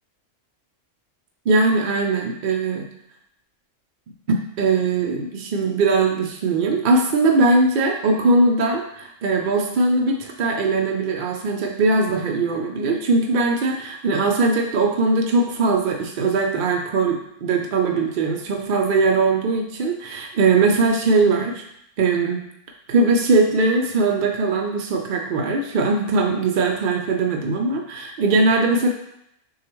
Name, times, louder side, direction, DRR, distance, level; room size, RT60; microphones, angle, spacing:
voice 1, 1.5-2.9 4.3-21.6 22.0-22.4 22.9-28.9, right 3 dB, 60° right, 1 dB, 0.5 m, -20 dB
6.2 x 2.3 x 3.0 m, 0.77 s
omnidirectional pair, 1.3 m